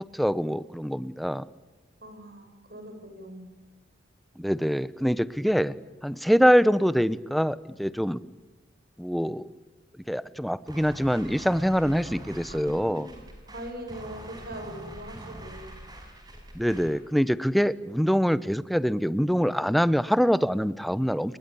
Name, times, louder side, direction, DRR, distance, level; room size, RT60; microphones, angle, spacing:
voice 1, 0.0-1.4 4.4-5.8 6.0-8.2 9.0-9.5 10.1-13.1 16.5-21.4, equal, ahead, 16 dB, 0.8 m, -24 dB
voice 2, 2.0-3.6 12.5-15.8, equal, 50° right, 6 dB, 7.7 m, -42 dB
sound 1, 10.7-17.0, right 1 dB, 20° right, 5.9 m, -44 dB
29.5 x 22.0 x 8.5 m, 1.2 s
head